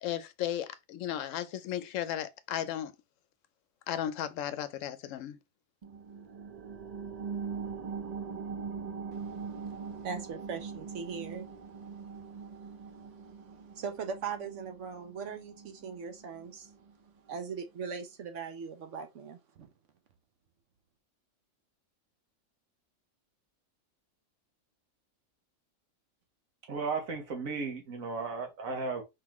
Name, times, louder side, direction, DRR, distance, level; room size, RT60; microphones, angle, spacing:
voice 1, 0.0-3.0 3.9-5.4, left 11 dB, 75° left, 0.9 m, -35 dB
sound 1, 5.8-16.9 17.3-17.4, right 5 dB, 45° right, 0.5 m, -42 dB
voice 2, 9.1-11.5 11.8-16.7 17.3-19.7, right 6 dB, 65° right, 1.1 m, -41 dB
voice 3, 26.7-29.0, right 4 dB, 80° right, 1.7 m, -35 dB
4.7 x 3.7 x 3.0 m
omnidirectional pair, 1.4 m